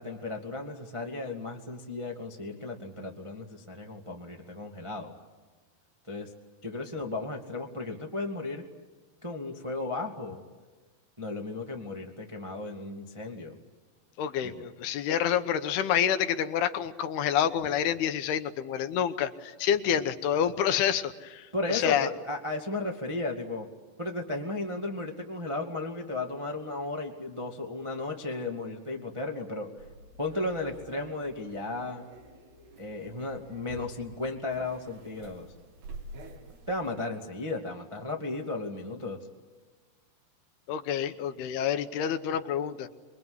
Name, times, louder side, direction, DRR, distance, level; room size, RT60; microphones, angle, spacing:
voice 1, 0.0-5.1 6.1-6.3 6.6-8.6 9.2-10.4 11.2-13.6 14.4-14.7 21.5-23.7 24.0-29.7 30.2-32.0 32.8-35.5 36.7-39.3, left 2 dB, 20° right, 2 dB, 0.8 m, -35 dB
voice 2, 14.2-22.1 40.7-42.9, left 9 dB, 75° left, 9 dB, 2.9 m, -28 dB
sound 1, 29.8-36.9, right 2 dB, 75° right, 4.7 m, -49 dB
26.5 x 22.5 x 9.8 m, 1.3 s
omnidirectional pair, 4.9 m